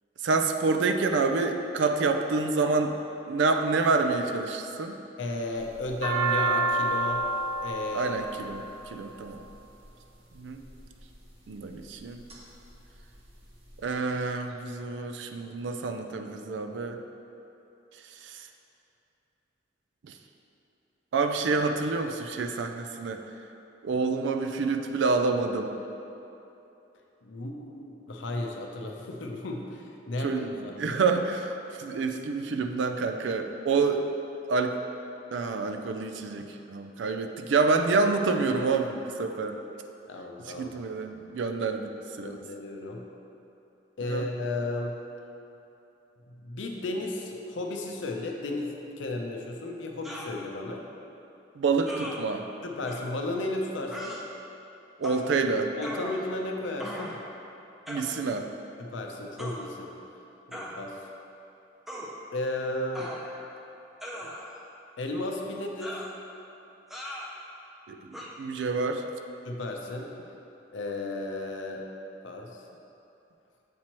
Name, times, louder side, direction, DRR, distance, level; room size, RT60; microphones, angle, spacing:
voice 1, 0.2-2.9 3.3-4.9 7.9-8.6 8.9-9.4 10.3-10.6 11.5-12.2 13.8-17.0 18.2-18.5 20.0-20.1 21.1-23.2 23.8-25.7 30.2-34.0 34.5-34.8 35.3-39.6 40.6-42.4 44.1-44.2 51.6-52.4 55.0-55.7 57.9-58.5 67.9-69.0, right 4 dB, 75° right, 6 dB, 0.4 m, -28 dB
voice 2, 5.2-7.3 7.6-8.2 8.9-9.1 27.2-31.0 40.1-40.7 42.2-43.0 44.0-45.0 46.3-50.8 52.6-54.2 55.8-57.1 58.8-59.9 60.5-61.0 62.3-63.1 64.2-64.3 65.0-66.0 69.4-70.1 70.7-71.8 72.2-72.6, left 2 dB, 80° left, 2 dB, 0.6 m, -34 dB
sound 1, 5.6-9.8 10.6-11.1 11.7-12.4 12.7-12.8 13.0-13.8, right 2 dB, 35° right, 0.8 m, -29 dB
sound 2, 50.0-50.3 51.9-52.2 52.9-53.0 53.9-54.2 55.0-55.3 55.8-56.4 56.8-57.2 57.9-58.1 59.4-59.6 60.5-60.8 61.9-62.1 63.0-63.5 64.0-64.6 65.8-66.1 66.9-67.3 68.1-68.3, equal, ahead, 0.4 m, -39 dB
7.4 x 4.4 x 2.9 m, 2.9 s
head